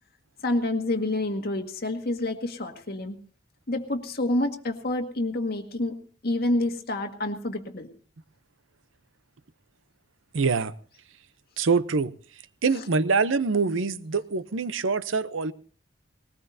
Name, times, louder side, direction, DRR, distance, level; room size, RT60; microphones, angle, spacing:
voice 1, 0.4-3.2 3.7-6.0 6.2-7.9 12.7-12.8, left 1 dB, 55° left, 1.8 m, -28 dB
voice 2, 10.3-10.7 11.6-12.1 12.6-15.5, right 4 dB, 85° right, 0.7 m, -24 dB
20.0 x 19.0 x 2.7 m
head